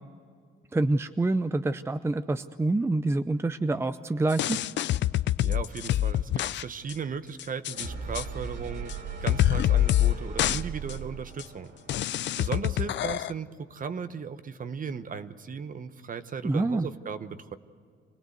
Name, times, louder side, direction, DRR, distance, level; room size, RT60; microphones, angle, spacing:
voice 1, 0.7-4.6 16.4-16.9, right 2 dB, 15° right, 11 dB, 0.6 m, -26 dB
sound 1, 4.3-6.6 6.9-7.0 7.4-7.9 8.2-8.3 8.9-9.0 9.3-10.1 10.4-10.6 10.9-11.0 11.4-11.5 11.9-13.3, left 13 dB, 65° left, 0.5 m, -25 dB
voice 2, 5.4-8.9 9.2-11.7 12.4-17.6, right 6 dB, 45° right, 12 dB, 1.0 m, -36 dB
sound 2, 7.7-13.5, right 4 dB, 65° right, 4.5 m, -39 dB
25.0 x 18.5 x 8.0 m, 2.1 s
cardioid pair, 90°, 20 cm